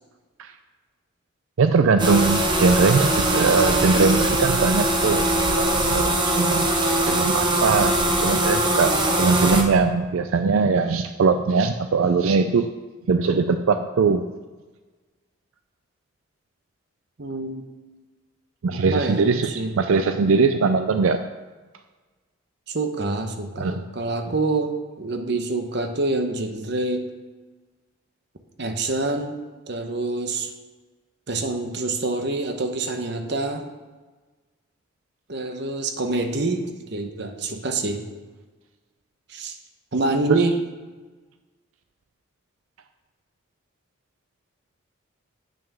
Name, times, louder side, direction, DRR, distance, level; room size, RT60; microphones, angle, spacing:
voice 1, 1.6-5.3 5.5-6.8 7.1-12.7 13.1-14.3 18.6-21.2 23.6-23.8 40.3-40.5, right 4 dB, 85° right, 9 dB, 0.4 m, -21 dB
sound 1, 2.0-9.6, right 1 dB, 20° right, 0.9 m, -21 dB
voice 2, 17.2-17.7 18.7-19.8 22.7-27.1 28.6-29.4 29.7-30.5 31.3-33.7 35.3-38.1 39.3-39.6 39.9-40.6, right 2 dB, 55° right, 6 dB, 0.9 m, -26 dB
9.0 x 6.2 x 6.0 m, 1.3 s
head